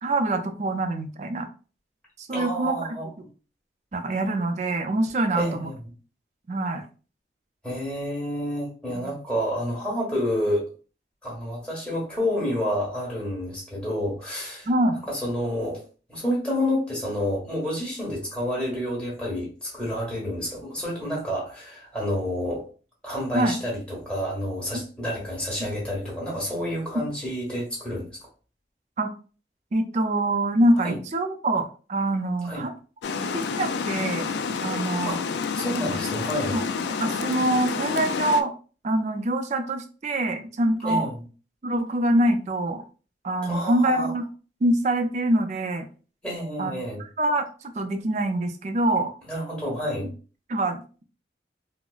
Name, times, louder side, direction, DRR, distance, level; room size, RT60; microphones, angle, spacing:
voice 1, 0.0-1.5 2.2-2.8 3.9-5.7 6.5-6.9 8.9-9.0 14.7-15.0 23.3-23.6 24.7-24.8 29.0-29.1 29.7-32.7 33.2-34.3 34.6-35.1 35.9-36.0 36.5-36.7 37.0-38.5 38.8-41.1 41.6-42.8 43.2-44.2 44.6-45.9 46.6-46.7 47.0-49.1 50.5-50.8, right 1 dB, 40° right, 7 dB, 0.4 m, -25 dB
voice 2, 2.3-3.1 5.3-5.9 7.6-10.7 11.2-14.7 15.1-15.8 16.1-22.6 23.0-28.1 30.8-31.0 32.4-32.6 35.0-36.6 40.8-41.2 43.4-44.1 46.2-47.0 49.3-50.1, equal, 5° left, -5 dB, 1.2 m, -29 dB
Water, 33.0-38.4, left 5 dB, 75° left, 0.3 m, -29 dB
3.9 x 2.0 x 2.3 m, 0.36 s
head